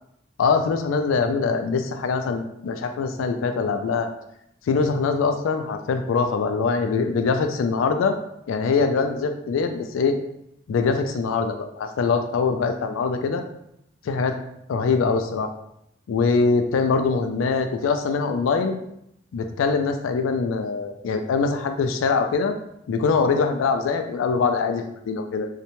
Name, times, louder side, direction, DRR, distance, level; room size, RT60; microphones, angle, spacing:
voice 1, 0.4-4.1 4.7-8.2 8.5-10.2 10.7-13.4 14.1-14.4 14.7-15.5 16.1-18.8 19.3-22.5 22.9-25.5, left 4 dB, 85° left, 7 dB, 0.3 m, -23 dB
2.7 x 2.1 x 2.9 m, 0.77 s
head